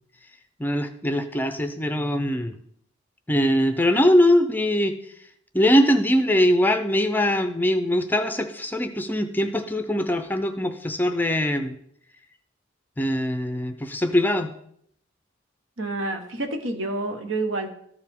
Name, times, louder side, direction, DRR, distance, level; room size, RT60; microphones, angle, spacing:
voice 1, 0.6-2.6 3.3-4.9 5.5-11.8 13.0-14.5, equal, 10° left, 7 dB, 0.5 m, -22 dB
voice 2, 15.8-17.7, right 2 dB, 75° right, 5 dB, 1.2 m, -28 dB
13.5 x 4.8 x 3.6 m, 0.68 s
head